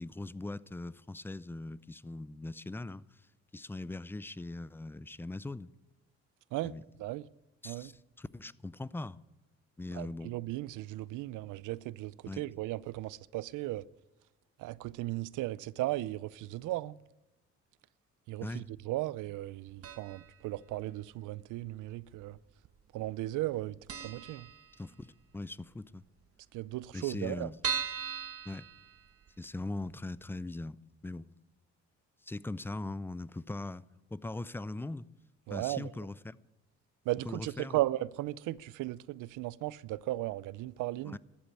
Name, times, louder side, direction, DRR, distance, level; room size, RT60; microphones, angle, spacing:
voice 1, 0.0-3.0 3.5-5.7 6.6-6.9 7.6-9.2 9.8-10.3 12.3-12.5 18.4-18.6 24.8-26.0 26.9-27.6 28.5-28.7 29.4-31.3 32.2-33.8 34.1-35.1 35.5-36.4 37.2-37.8 41.0-41.2, left 2 dB, 5° left, 0.4 m, -40 dB
voice 2, 9.9-13.8 14.6-17.0 18.3-22.4 22.9-23.7 24.0-24.5 26.5-27.5 35.5-35.9 37.1-41.2, right 17 dB, 85° right, 0.5 m, -36 dB
sound 1, 19.8-20.4 20.6-20.7 21.7-22.4 22.6-22.8 23.1-23.2 23.5-23.6 23.9-25.2 25.6-25.7 25.9-26.0 26.2-26.3 26.8-29.5 29.9-30.0 30.4-30.5, right 7 dB, 50° right, 1.4 m, -39 dB
13.5 x 8.6 x 9.8 m
cardioid pair, 90°, 30 cm